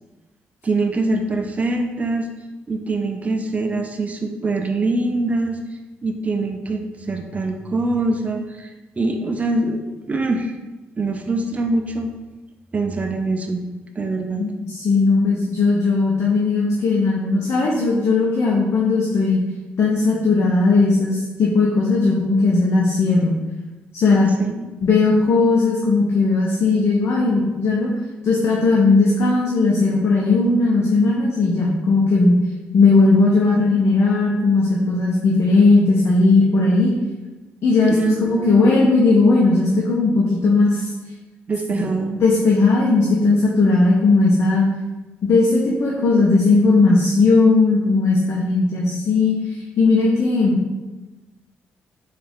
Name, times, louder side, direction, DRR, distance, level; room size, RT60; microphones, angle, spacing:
voice 1, 0.6-2.3 2.7-5.6 6.0-10.5 11.0-12.1 12.7-13.6 14.0-14.4 24.4-24.7 37.9-38.8 41.5-42.2, right 2 dB, 30° right, 4 dB, 0.4 m, -23 dB
voice 2, 14.4-19.4 19.8-23.3 23.9-24.3 24.8-27.9 28.2-32.4 32.7-36.9 37.6-40.9 41.7-41.9 42.2-44.6 45.2-49.4 49.8-50.7, left 3 dB, 60° left, -4 dB, 0.6 m, -17 dB
3.6 x 2.4 x 3.4 m, 1.1 s
supercardioid pair, 60°, 5 cm